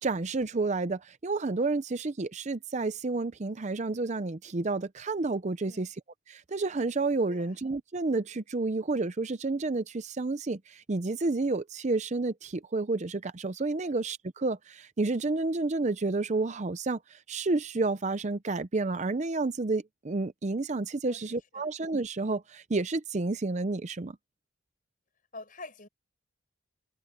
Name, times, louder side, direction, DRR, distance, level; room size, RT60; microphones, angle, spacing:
voice 1, 0.0-5.9 6.3-24.2, right 3 dB, 35° right, 0.5 m, -30 dB
voice 2, 21.1-21.7 25.3-25.9, left 2 dB, 40° left, 6.9 m, -47 dB
head